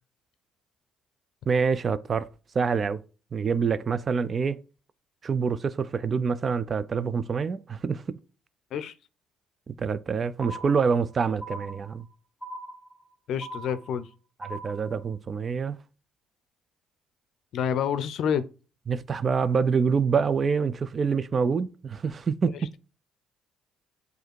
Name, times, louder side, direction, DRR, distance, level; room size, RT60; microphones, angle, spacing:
voice 1, 1.5-3.0 3.3-4.6 5.2-8.0 9.7-12.1 14.4-15.8 18.9-22.7, right 5 dB, 45° right, 0.4 m, -26 dB
sound 1, 10.4-11.1 11.4-12.1 12.4-13.1 13.4-14.1 14.4-15.1, right 1 dB, 15° left, 1.2 m, -40 dB
voice 2, 13.3-14.1 17.5-18.4, left 8 dB, 70° left, 0.5 m, -28 dB
7.8 x 2.7 x 4.5 m
supercardioid pair, 65°, 0 cm